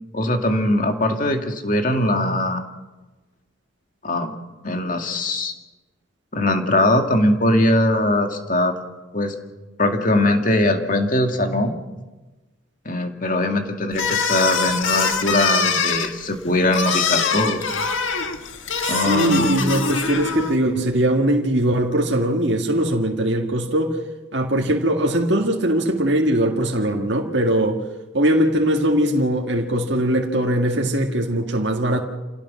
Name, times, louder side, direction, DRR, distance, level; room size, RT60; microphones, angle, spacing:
voice 1, 0.1-2.6 4.0-4.3 4.6-5.5 6.3-8.7 9.1-9.3 9.8-11.8 12.9-17.7 18.9-19.8, left 1 dB, 40° left, 4 dB, 2.2 m, -21 dB
sound 1, 13.9-20.6, left 5 dB, 75° left, 1.7 m, -23 dB
voice 2, 19.0-24.0 24.3-27.8 28.1-32.0, right 1 dB, 60° right, 1 dB, 2.0 m, -20 dB
28.0 x 17.5 x 6.3 m, 1.1 s
head